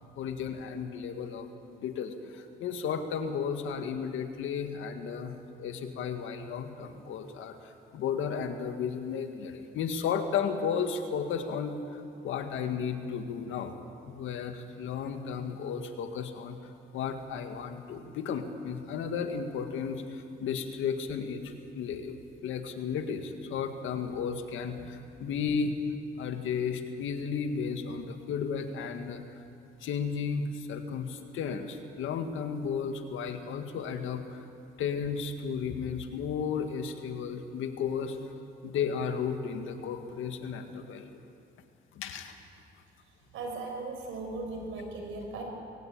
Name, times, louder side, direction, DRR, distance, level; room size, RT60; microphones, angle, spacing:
voice 1, 0.2-13.7 14.1-16.6 16.9-22.2 22.4-25.7 26.2-29.2 29.8-34.5 34.8-38.2 38.6-41.1 41.9-42.4, left 6 dB, 80° left, 6 dB, 1.9 m, -34 dB
voice 2, 43.3-45.4, right 3 dB, 90° right, 2 dB, 5.4 m, -38 dB
21.5 x 17.0 x 8.8 m, 2.5 s
cardioid pair, 90°, 20 cm